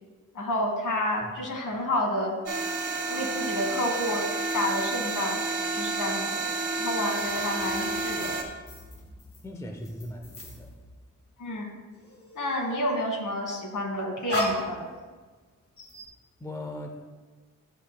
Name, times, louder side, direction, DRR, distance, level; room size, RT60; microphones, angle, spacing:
voice 1, 0.3-2.4 3.1-4.3 4.5-5.4 5.7-6.5 6.8-8.4 11.4-11.8 12.3-14.9, left 1 dB, 70° left, 1 dB, 1.7 m, -30 dB
sound 1, 2.5-8.4, right 3 dB, 70° right, 1.4 m, -30 dB
sound 2, 7.2-11.4 11.7-12.9 13.7-15.4 15.8-16.1, equal, 45° left, 1.8 m, -36 dB
voice 2, 9.4-10.7 16.4-16.9, left 1 dB, 10° left, 3 dB, 0.6 m, -38 dB
11.5 x 7.3 x 2.2 m, 1.4 s
wide cardioid pair, 160°, 31 cm